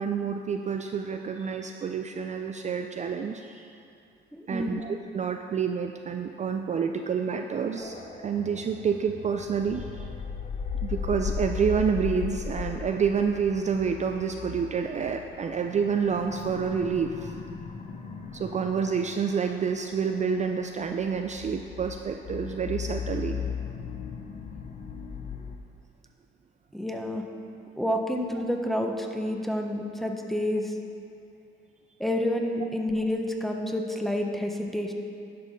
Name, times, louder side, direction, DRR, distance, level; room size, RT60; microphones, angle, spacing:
voice 1, 0.0-3.7 4.5-10.1 10.8-17.3 18.3-23.4, right 6 dB, 35° right, 4 dB, 0.4 m, -28 dB
voice 2, 4.3-4.8 26.7-27.2 27.8-30.7 32.0-34.9, left 1 dB, ahead, 2 dB, 0.8 m, -29 dB
sound 1, 7.8-25.6, left 6 dB, 35° left, 0.7 m, -37 dB
10.5 x 5.5 x 4.0 m, 2.5 s
cardioid pair, 90°, 20 cm